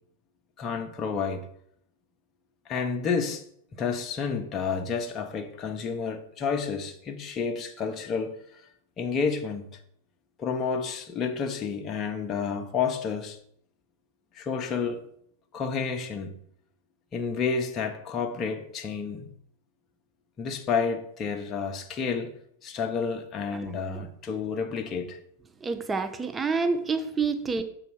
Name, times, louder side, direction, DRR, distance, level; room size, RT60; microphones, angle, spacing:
voice 1, 0.6-1.5 2.7-3.4 3.8-8.7 9.0-9.7 10.4-13.4 14.3-15.0 15.5-16.4 17.1-19.3 20.4-22.3 22.6-25.2, left 5 dB, 30° left, 0.9 m, -30 dB
voice 2, 25.6-27.6, right 4 dB, 15° right, 0.7 m, -28 dB
6.8 x 4.1 x 6.2 m
hypercardioid pair, 100°, 0 cm